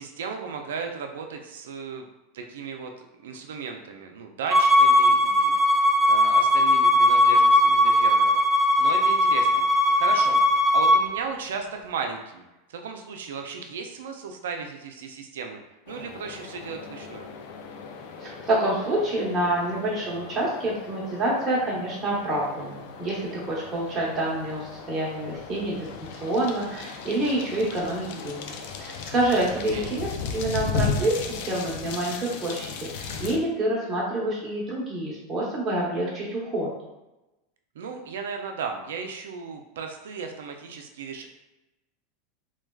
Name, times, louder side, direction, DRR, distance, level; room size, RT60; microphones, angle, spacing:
voice 1, 0.0-2.1 2.3-2.9 3.2-12.4 12.7-15.6 15.9-17.3 29.7-29.9 37.8-41.3, right 5 dB, 85° right, 4 dB, 0.4 m, -35 dB
Bowed string instrument, 4.5-11.0, left 1 dB, 5° right, 0.4 m, -19 dB
sound 1, 15.9-33.4, left 5 dB, 65° left, 0.3 m, -36 dB
voice 2, 18.2-36.7, right 1 dB, 25° right, -5 dB, 0.9 m, -27 dB
3.2 x 2.2 x 2.2 m, 1.0 s
supercardioid pair, 115°, 0 cm